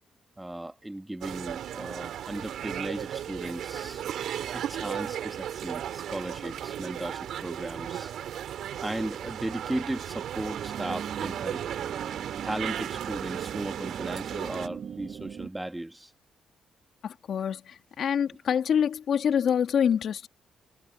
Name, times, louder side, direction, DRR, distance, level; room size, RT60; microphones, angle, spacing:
voice 1, 0.4-4.0 4.5-8.1 8.8-11.6 12.4-16.1, right 1 dB, 10° right, 1.7 m, -36 dB
sound 1, 1.2-14.7, right 10 dB, 70° right, 3.8 m, -35 dB
sound 2, 10.5-15.5, right 7 dB, 55° right, 5.8 m, -41 dB
voice 2, 17.0-20.3, left 8 dB, 60° left, 2.6 m, -26 dB
cardioid pair, 90°, 0 cm